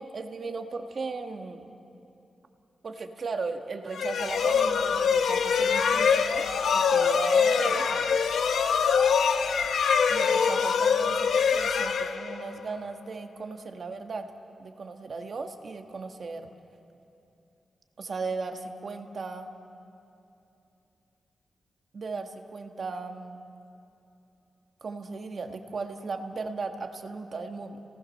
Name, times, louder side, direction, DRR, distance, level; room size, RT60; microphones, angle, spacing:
voice 1, 0.0-1.7 2.8-6.5 6.7-8.2 10.1-14.3 14.6-16.5 18.0-19.5 21.9-23.4 24.8-27.8, right 4 dB, 55° right, 5 dB, 1.5 m, -36 dB
sound 1, 3.9-12.7, left 6 dB, 90° left, 0.9 m, -24 dB
29.0 x 18.5 x 6.5 m, 2.9 s
wide cardioid pair, 100°, 0 cm